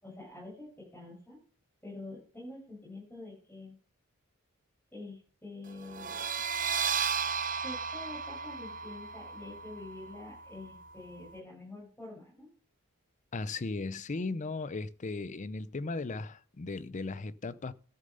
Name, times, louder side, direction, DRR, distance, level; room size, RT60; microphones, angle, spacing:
voice 1, 0.0-1.4 1.8-3.8 4.9-6.3 7.6-12.5, left 2 dB, 10° left, 6.9 m, -46 dB
sound 1, 5.9-11.3, right 6 dB, 40° right, 0.9 m, -35 dB
voice 2, 13.3-17.7, left 3 dB, 35° left, 0.5 m, -36 dB
13.0 x 6.5 x 5.4 m
head